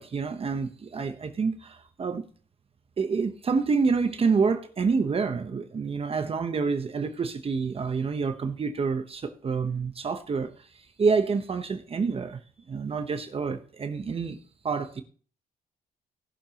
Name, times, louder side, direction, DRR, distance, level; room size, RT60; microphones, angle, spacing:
voice 1, 0.0-2.3 3.0-12.4 12.7-14.4 14.6-15.0, right 5 dB, 35° right, 0.9 m, -28 dB
19.0 x 6.7 x 2.9 m
cardioid pair, 95°, 16 cm